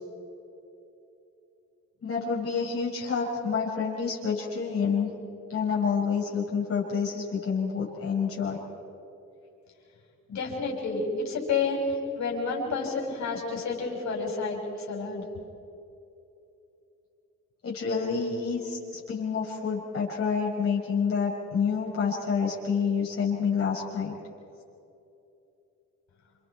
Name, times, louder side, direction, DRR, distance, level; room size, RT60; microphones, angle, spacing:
voice 1, 2.0-5.1 5.5-8.6 17.6-24.1, left 6 dB, 50° left, -3 dB, 6.2 m, -28 dB
voice 2, 10.3-11.9 12.1-14.6 14.9-15.2, left 4 dB, 65° left, -1 dB, 6.8 m, -30 dB
29.5 x 26.0 x 4.6 m, 2.8 s
cardioid pair, 90°, 30 cm